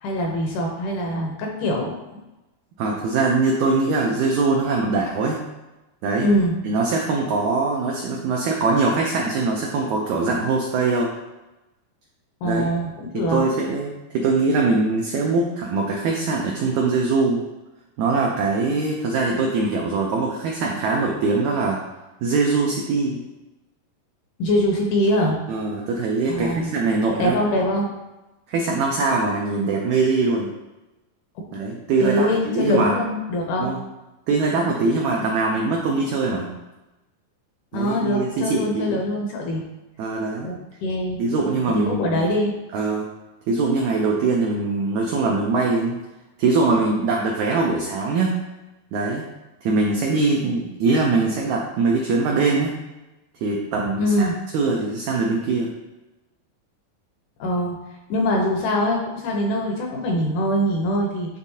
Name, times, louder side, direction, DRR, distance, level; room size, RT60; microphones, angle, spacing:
voice 1, 0.0-2.0 6.2-6.5 12.4-13.5 24.4-25.4 26.3-26.7 27.2-27.9 32.0-33.8 37.7-39.6 40.4-40.6 40.8-41.2 41.8-42.6 54.0-54.4 57.4-57.8 58.1-61.4, equal, 75° left, 0 dB, 2.0 m, -23 dB
voice 2, 2.8-5.4 6.0-6.3 6.6-11.1 12.4-12.7 13.1-17.4 18.0-21.8 22.2-23.2 25.5-27.4 28.5-30.5 31.5-32.9 33.6-33.8 34.3-36.5 37.7-39.0 40.0-40.5 41.2-42.2 42.7-43.1 43.5-46.0 46.4-48.4 48.9-49.2 49.6-52.8 53.4-54.3 54.5-55.7, right 3 dB, 90° right, -1 dB, 1.6 m, -22 dB
10.0 x 3.6 x 2.8 m, 1.0 s
omnidirectional pair, 4.2 m